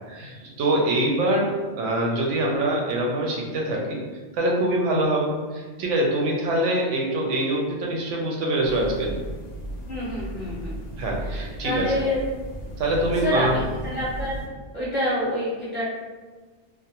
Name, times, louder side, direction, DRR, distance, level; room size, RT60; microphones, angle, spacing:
voice 1, 0.1-4.0 4.3-9.1 11.0-11.9 12.8-13.6, right 1 dB, 90° right, -1 dB, 0.9 m, -24 dB
sound 1, 8.6-14.5, right 1 dB, 60° left, 0.6 m, -35 dB
voice 2, 9.8-10.8 11.2-12.2 13.2-14.4 14.7-15.8, left 1 dB, 10° right, -9 dB, 0.6 m, -27 dB
2.4 x 2.1 x 2.8 m, 1.4 s
omnidirectional pair, 1.2 m